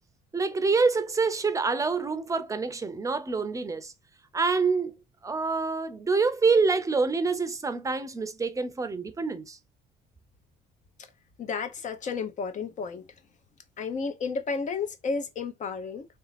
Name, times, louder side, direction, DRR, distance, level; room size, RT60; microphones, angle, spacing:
voice 1, 0.3-3.9 4.3-5.0 5.2-9.6, right 4 dB, 20° right, 0.7 m, -26 dB
voice 2, 11.4-13.0 13.8-16.0, left 5 dB, 45° left, 1.0 m, -32 dB
3.4 x 2.8 x 4.1 m
cardioid pair, 110°, 17 cm